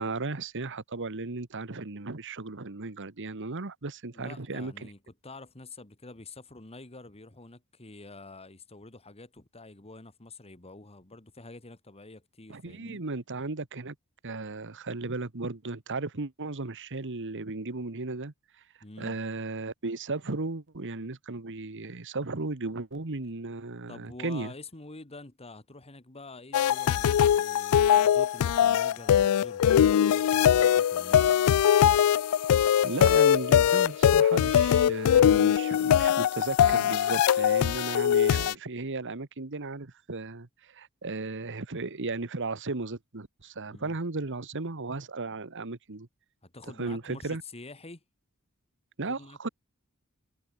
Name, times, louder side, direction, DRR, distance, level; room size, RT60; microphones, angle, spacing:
voice 1, 0.0-4.9 12.5-13.9 14.2-18.3 19.0-24.5 32.8-46.1 46.8-47.4 49.0-49.5, right 3 dB, 60° right, 1.4 m, -35 dB
voice 2, 4.1-13.0 18.8-19.2 23.9-31.4 43.7-44.0 46.4-48.0 49.1-49.5, left 2 dB, 30° left, 1.9 m, -47 dB
sound 1, 26.5-38.5, left 9 dB, 90° left, 0.3 m, -22 dB
head